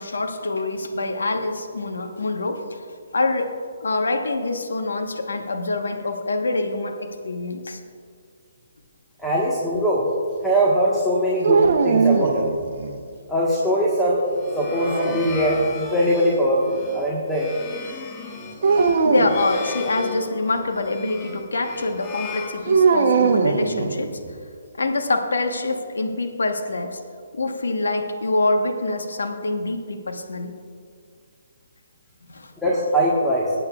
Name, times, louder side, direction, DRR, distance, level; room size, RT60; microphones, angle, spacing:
voice 1, 0.0-2.8 3.1-3.5 3.8-7.8 19.0-24.1 24.8-27.0 27.3-30.5 32.3-32.5, left 2 dB, 85° left, 4 dB, 1.2 m, -25 dB
voice 2, 9.2-10.1 10.4-12.5 13.3-14.2 14.5-17.5 32.6-33.5, equal, ahead, -7 dB, 1.4 m, -21 dB
sound 1, 11.4-13.0 14.6-15.8 18.6-19.4 22.7-24.3, right 4 dB, 55° right, 0.9 m, -20 dB
sound 2, 14.2-23.3, left 4 dB, 25° left, 1.0 m, -35 dB
19.5 x 9.0 x 2.4 m, 2.2 s
hypercardioid pair, 150°, 0 cm